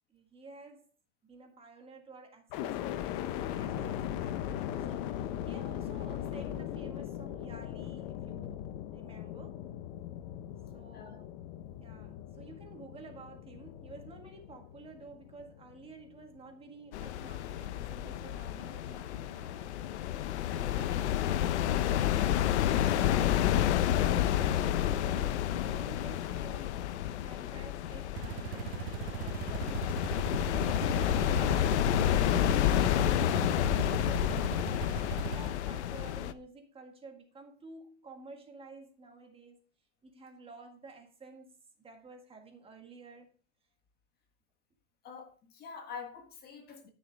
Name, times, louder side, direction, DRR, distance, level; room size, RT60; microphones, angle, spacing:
voice 1, 0.1-0.9 1.2-8.6 8.9-9.6 10.7-11.3 11.8-22.2 23.3-23.8 24.1-26.8 27.2-29.7 30.5-32.4 32.8-33.3 33.6-39.6 40.0-43.3, right 3 dB, 15° right, 1.8 m, -51 dB
sound 1, 2.5-16.5 17.0-17.7, left 11 dB, 45° left, 0.8 m, -39 dB
sound 2, 16.9-36.3, left 11 dB, 80° left, 0.8 m, -30 dB
voice 2, 23.1-23.6 29.5-29.6 45.0-46.9, left 6 dB, 30° left, 1.5 m, -47 dB
sound 3, 28.2-35.5, right 17 dB, 65° right, 0.4 m, -39 dB
13.5 x 6.5 x 3.5 m
supercardioid pair, 140°, 34 cm